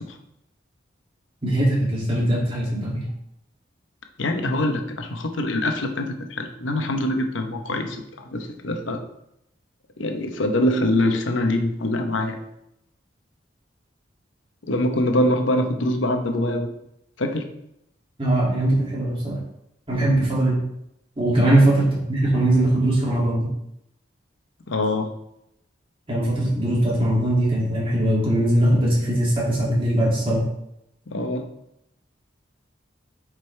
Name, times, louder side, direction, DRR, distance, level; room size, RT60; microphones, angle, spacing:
voice 1, 1.4-3.0 18.2-19.4 19.9-20.6 21.2-23.5 26.1-30.4, right 1 dB, 30° right, -5 dB, 2.4 m, -20 dB
voice 2, 4.2-9.0 10.0-12.4 14.6-16.7 17.2-17.5 19.9-20.1 21.5-21.6 24.7-25.1 31.1-31.5, left 1 dB, 90° left, 5 dB, 0.9 m, -24 dB
7.9 x 5.1 x 3.3 m, 0.79 s
head